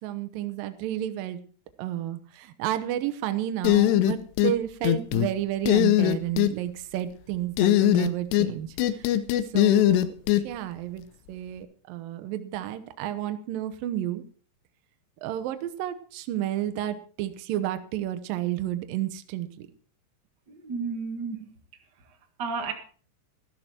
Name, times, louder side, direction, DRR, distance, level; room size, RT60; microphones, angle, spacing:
voice 1, 0.0-1.4 1.8-9.2 9.4-14.2 15.2-19.7, right 12 dB, 75° right, 2.1 m, -31 dB
sound 1, 3.6-4.5 4.8-5.3 5.7-6.5 7.6-8.5 8.8-10.4, left 14 dB, 75° left, 2.7 m, -20 dB
voice 2, 20.5-21.6 22.0-22.7, right 5 dB, 60° right, 1.1 m, -33 dB
13.5 x 12.5 x 4.4 m
omnidirectional pair, 5.3 m